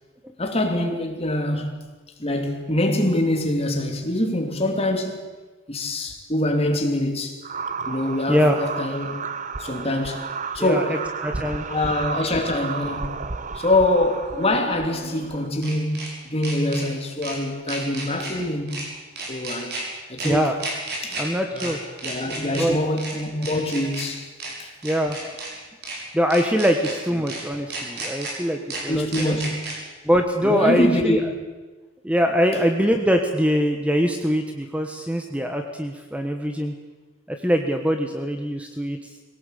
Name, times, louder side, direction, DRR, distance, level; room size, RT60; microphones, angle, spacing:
voice 1, 0.4-1.8 2.2-5.2 5.7-7.4 7.9-9.2 9.6-10.2 10.5-11.0 11.7-13.2 13.5-18.8 19.3-19.8 20.1-20.5 21.0-21.8 22.0-24.3 24.6-24.7 28.9-29.6 30.4-31.3, left 1 dB, 30° left, 3.1 m, -24 dB
sound 1, 7.4-15.5, right 5 dB, 40° right, 1.0 m, -33 dB
voice 2, 10.6-11.6 20.2-20.6 21.2-21.8 22.6-22.8 24.8-25.2 26.1-29.4 30.0-31.2 32.0-36.7 37.3-39.1, equal, 5° right, 1.3 m, -23 dB
sound 2, 11.8-11.9 14.3-16.1 16.4-16.8 17.2-17.4 17.7-18.3 18.7-18.8 19.2-19.8 20.2-20.3 20.6-21.2 21.6-21.7 22.0-22.6 23.0-23.1 23.4-24.0 24.4-24.5 24.8-25.5 25.8-26.0 26.3-26.9 27.3-27.4 27.7-28.3 28.7-28.8 29.1-29.7, right 3 dB, 55° right, 6.4 m, -33 dB
21.5 x 18.0 x 8.4 m
head